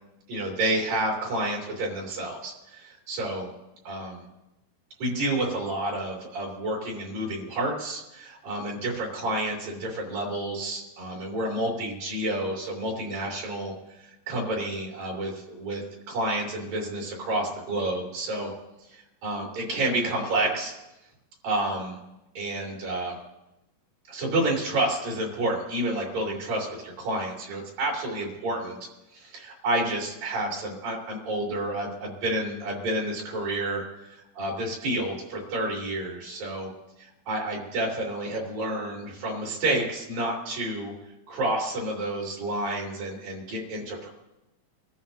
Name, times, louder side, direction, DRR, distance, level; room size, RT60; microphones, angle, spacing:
voice 1, 0.3-3.5 3.8-4.2 5.0-18.5 18.9-20.8 21.4-22.0 22.3-23.2 24.1-28.8 29.1-36.7 37.0-40.9 41.3-44.1, right 1 dB, 60° right, -2 dB, 4.7 m, -30 dB
25.5 x 14.0 x 2.8 m, 0.95 s
omnidirectional pair, 4.6 m